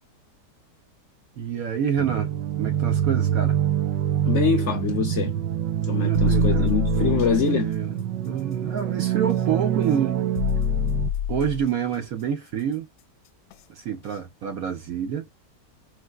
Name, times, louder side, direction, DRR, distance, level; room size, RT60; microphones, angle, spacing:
voice 1, 1.4-2.3 2.6-3.6 6.0-8.0 8.3-10.2 11.3-12.9 13.7-15.3, right 8 dB, 65° right, 1.1 m, -28 dB
sound 1, 2.0-11.1, right 11 dB, 85° right, 1.3 m, -25 dB
voice 2, 4.2-5.4 5.9-7.7, left 7 dB, 55° left, 0.8 m, -24 dB
sound 2, 6.1-7.4 9.3-9.4 10.4-11.7 13.5-13.6 14.1-14.2, left 10 dB, 75° left, 1.2 m, -26 dB
4.7 x 2.1 x 2.2 m
omnidirectional pair, 1.9 m